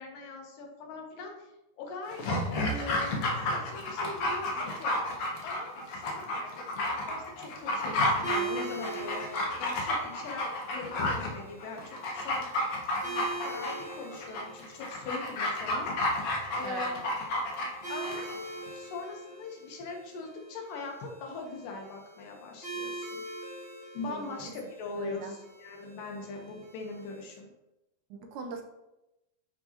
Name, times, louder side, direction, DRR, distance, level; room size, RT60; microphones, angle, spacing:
voice 1, 0.0-2.2 2.7-4.9 5.4-6.7 7.1-12.6 13.0-17.0 17.9-18.3 18.7-23.2 23.9-27.5, left 3 dB, 90° left, 1 dB, 2.7 m, -41 dB
Dog, 2.1-18.4 18.7-18.8, left 1 dB, 70° left, 1.3 m, -31 dB
sound 1, 8.2-27.4, right 3 dB, 40° right, 0.9 m, -43 dB
voice 2, 24.1-24.5 25.0-25.3 28.1-28.6, right 4 dB, 80° right, 4 dB, 2.2 m, -41 dB
9.5 x 3.7 x 2.8 m, 0.94 s
omnidirectional pair, 3.7 m